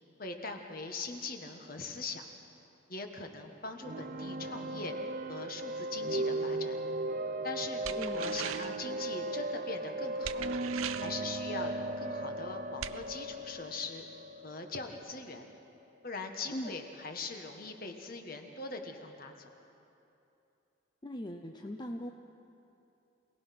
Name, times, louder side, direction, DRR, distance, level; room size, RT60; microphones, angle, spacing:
voice 1, 0.2-2.2 2.9-5.0 5.3-6.8 7.4-10.4 11.0-14.0 14.4-15.5 16.0-19.5, left 3 dB, 45° left, 4 dB, 1.6 m, -41 dB
sound 1, 3.8-15.5, right 2 dB, 40° right, 0.7 m, -37 dB
sound 2, 7.8-8.8 10.2-11.2 12.8-13.0, right 10 dB, 85° right, 0.6 m, -39 dB
voice 2, 8.0-8.4 16.5-16.7 21.0-22.1, equal, 20° left, 3 dB, 0.6 m, -40 dB
26.5 x 18.5 x 6.0 m, 2.8 s
head